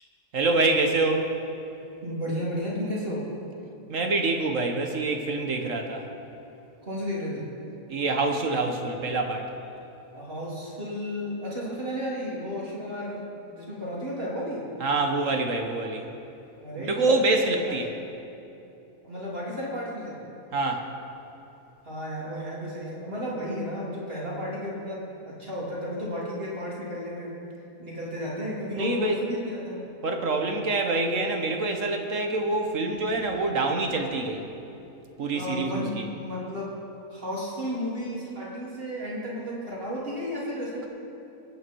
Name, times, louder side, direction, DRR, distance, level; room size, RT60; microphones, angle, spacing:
voice 1, 0.3-1.2 3.9-6.0 7.9-9.5 14.8-16.0 16.9-17.9 20.5-20.8 28.8-29.1 30.0-34.4 35.2-36.0, right 3 dB, 55° right, 3 dB, 1.5 m, -26 dB
voice 2, 2.0-3.3 6.8-7.5 10.1-13.2 13.4-14.7 16.6-16.9 17.3-17.8 19.0-20.2 21.8-27.4 27.8-29.9 35.3-36.8 37.1-40.9, equal, 35° right, -6 dB, 3.5 m, -33 dB
22.5 x 9.3 x 4.6 m, 2.8 s
omnidirectional pair, 1.7 m